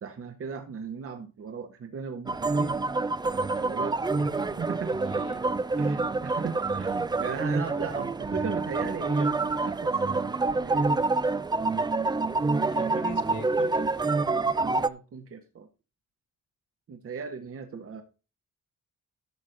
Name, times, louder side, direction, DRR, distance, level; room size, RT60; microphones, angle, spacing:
voice 1, 0.0-2.8 3.6-4.0 4.6-4.9 5.8-9.3 9.6-10.9 12.8-13.0 14.6-15.7 16.9-18.0, right 6 dB, 50° right, 6 dB, 1.3 m, -37 dB
sound 1, 2.3-14.9, right 3 dB, 15° right, 0.4 m, -27 dB
voice 2, 4.1-5.5 8.3-8.4 8.8-9.3 12.7-14.0, left 5 dB, 50° left, 10 dB, 1.9 m, -43 dB
12.0 x 6.4 x 3.9 m, 0.31 s
cardioid pair, 90°, 30 cm